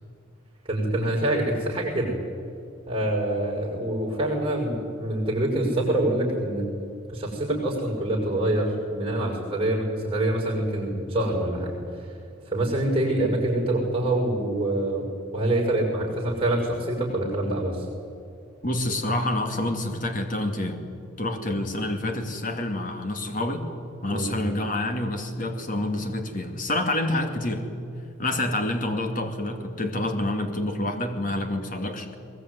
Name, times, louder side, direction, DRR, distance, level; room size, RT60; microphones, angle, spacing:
voice 1, 0.7-2.1 2.9-6.7 7.1-12.2 12.4-15.1 15.3-17.9 24.1-24.4, right 1 dB, 25° right, -2 dB, 6.5 m, -25 dB
voice 2, 18.6-20.8 21.2-23.7 24.0-27.7 28.2-32.1, left 1 dB, 40° left, 5 dB, 2.6 m, -27 dB
22.0 x 21.0 x 9.8 m, 2.4 s
head